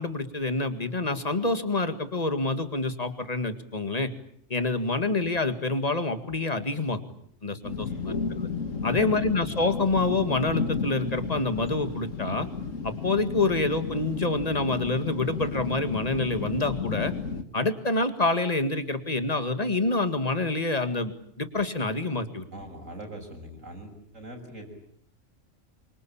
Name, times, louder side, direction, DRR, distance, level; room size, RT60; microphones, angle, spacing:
voice 1, 0.0-4.1 4.5-7.0 7.4-8.5 8.8-12.5 12.8-17.1 17.5-22.4, left 2 dB, 30° left, 9 dB, 2.1 m, -27 dB
sound 1, 7.6-17.4, left 5 dB, 80° left, 2.2 m, -33 dB
voice 2, 7.8-8.3 8.8-9.3 22.5-24.7, right 1 dB, 85° right, 4 dB, 6.9 m, -42 dB
27.0 x 24.5 x 8.7 m, 0.68 s
omnidirectional pair, 1.3 m